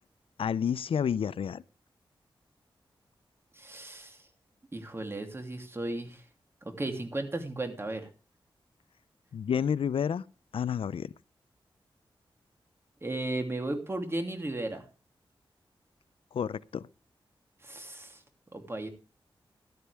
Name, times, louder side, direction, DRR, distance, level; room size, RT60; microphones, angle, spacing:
voice 1, 0.4-1.6 9.3-10.2 10.5-11.1 16.3-16.8, left 7 dB, 85° left, 0.5 m, -29 dB
voice 2, 3.6-4.2 4.7-6.2 6.6-8.1 13.0-14.8 17.6-18.2 18.5-18.9, right 2 dB, 25° right, 2.9 m, -35 dB
14.5 x 12.0 x 3.4 m
wide cardioid pair, 95°, 9 cm